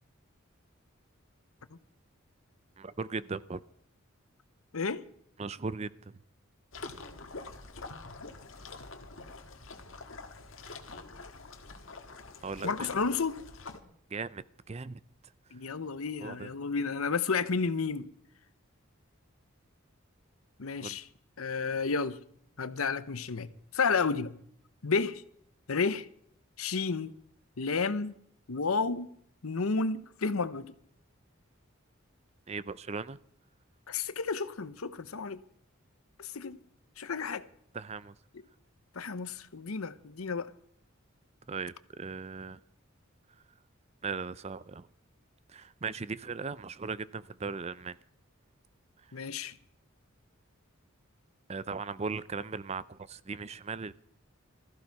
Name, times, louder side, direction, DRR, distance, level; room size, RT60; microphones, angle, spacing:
voice 1, 2.8-3.6 5.4-6.2 12.4-12.7 14.1-15.0 16.2-16.5 20.8-21.0 32.5-33.2 37.7-38.1 41.5-42.6 44.0-44.9 45.5-48.0 51.5-53.9, right 4 dB, 30° right, 0.5 m, -38 dB
sound 1, 6.7-13.8, left 3 dB, 65° left, 1.6 m, -45 dB
voice 2, 12.6-13.4 15.5-18.1 20.6-21.0 21.4-22.2 22.6-24.3 24.8-25.2 25.7-26.1 26.6-27.1 27.6-28.1 28.5-29.1 29.4-30.7 33.9-35.4 36.2-36.6 37.0-37.4 38.9-40.5 49.1-49.5, left 4 dB, 90° left, 0.9 m, -31 dB
16.0 x 14.5 x 4.7 m
head